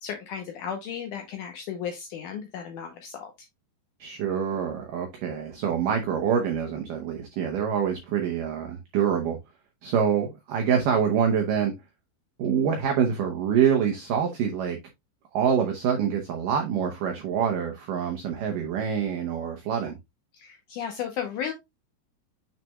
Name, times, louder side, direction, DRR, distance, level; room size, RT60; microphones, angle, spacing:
voice 1, 0.0-3.3 20.3-21.5, left 8 dB, 90° left, 1.8 m, -34 dB
voice 2, 4.0-9.4 9.8-11.7 12.4-14.8 15.3-20.0, right 8 dB, 70° right, 2.1 m, -26 dB
7.5 x 5.7 x 2.2 m
omnidirectional pair, 4.8 m